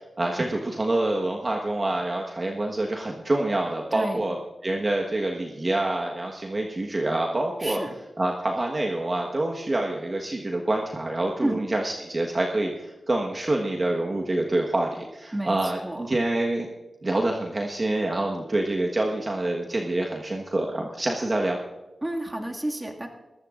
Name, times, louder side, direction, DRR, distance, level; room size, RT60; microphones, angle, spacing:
voice 1, 0.2-4.4 4.6-7.8 8.2-16.7 17.0-21.6, right 2 dB, 40° right, 0 dB, 1.4 m, -26 dB
voice 2, 3.9-4.3 7.6-7.9 11.4-11.6 15.3-16.0 22.0-23.1, right 1 dB, 20° right, 1 dB, 2.1 m, -30 dB
21.0 x 14.5 x 2.5 m, 1.1 s
cardioid pair, 65°, 0 cm